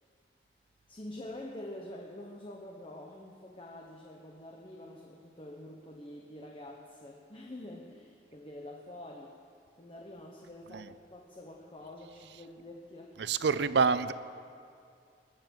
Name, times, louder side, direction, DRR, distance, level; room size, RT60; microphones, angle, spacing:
voice 1, 0.9-9.4 9.8-13.6, left 1 dB, 30° left, 1 dB, 1.0 m, -46 dB
voice 2, 13.2-14.1, right 5 dB, 70° right, 15 dB, 0.5 m, -27 dB
21.0 x 7.2 x 7.6 m, 2.4 s
head